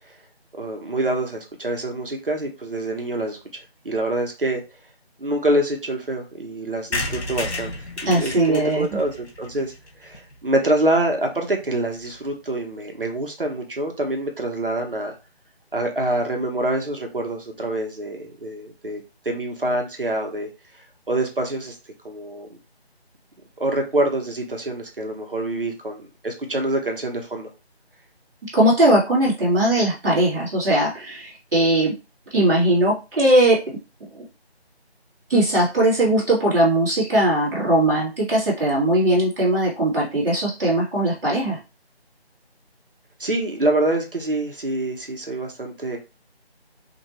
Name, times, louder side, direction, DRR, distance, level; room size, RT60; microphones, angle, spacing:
voice 1, 0.6-3.4 3.8-4.6 5.2-7.7 8.0-9.7 10.0-15.2 15.7-20.5 21.1-21.8 22.0-22.5 23.6-27.5 43.2-46.0, right 1 dB, 55° right, 3 dB, 1.1 m, -25 dB
sound 1, 6.9-10.6 11.0-11.1 11.3-11.4 11.6-11.7 11.9-12.2, left 2 dB, 85° left, 1.3 m, -32 dB
voice 2, 8.0-8.9 28.5-31.9 32.3-33.6 35.3-41.6, right 1 dB, 5° right, -22 dB, 1.3 m, -19 dB
5.1 x 3.0 x 3.0 m, 0.28 s
figure-of-eight pair, 170°, 32 cm